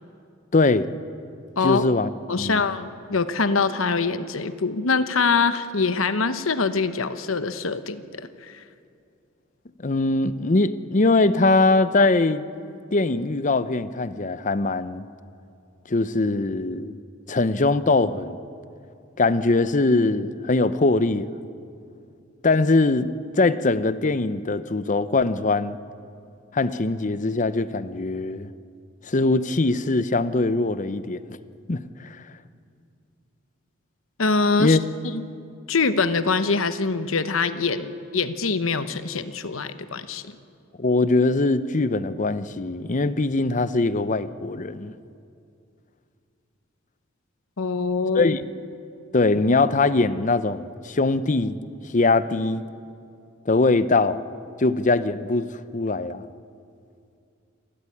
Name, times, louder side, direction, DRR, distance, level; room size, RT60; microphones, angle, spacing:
voice 1, 0.5-0.9 1.6-2.1 2.4-2.6 9.8-12.4 12.9-15.0 15.9-17.0 17.3-18.4 19.2-21.3 22.4-23.1 23.4-25.8 26.5-28.5 29.1-31.2 31.7-31.8 34.6-34.8 40.8-44.9 48.2-48.4 49.1-51.6 51.9-52.7 53.5-54.2 54.6-55.5 55.7-56.2, left 3 dB, 40° left, 14 dB, 0.7 m, -21 dB
voice 2, 2.3-8.6 34.2-34.8 35.1-35.2 35.7-40.4 47.6-48.4, left 4 dB, 85° left, 11 dB, 1.0 m, -24 dB
28.0 x 13.0 x 9.9 m, 2.5 s
head